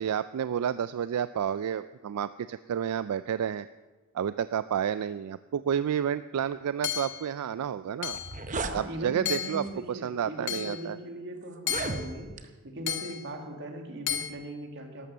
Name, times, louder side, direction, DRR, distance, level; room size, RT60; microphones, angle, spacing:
voice 1, 0.0-3.7 4.1-8.2 8.7-11.0, right 8 dB, 80° right, 14 dB, 0.3 m, -30 dB
Hammer / Chink clink, 6.8-7.3 8.0-8.4 9.3-9.7 10.5-10.8 11.7-12.1 12.9-13.3 14.1-14.3, left 11 dB, 55° left, 1.0 m, -33 dB
sound 1, 7.7-7.8 8.0-8.8 9.6-9.9 10.6-10.7 11.5-12.5, right 3 dB, 35° right, 0.8 m, -35 dB
voice 2, 8.7-15.1, right 1 dB, 55° right, 3 dB, 2.0 m, -39 dB
12.5 x 12.5 x 6.2 m, 1.3 s
head